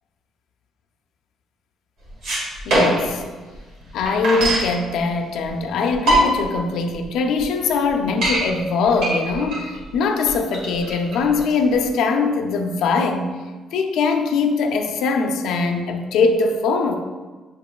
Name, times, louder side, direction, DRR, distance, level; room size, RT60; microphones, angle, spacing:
sound 1, 2.1-3.2 3.5-3.6 3.8-4.7 5.5-5.6 5.9-6.6 7.0-7.1 7.4-7.5 7.9-8.4 9.0-11.9, right 1 dB, 70° right, 1.5 m, -21 dB
voice 1, 2.7-3.2 3.9-13.3 13.7-16.9, left 4 dB, 80° left, 4 dB, 0.4 m, -21 dB
7.0 x 2.9 x 2.4 m, 1.4 s
cardioid pair, 115°, 0 cm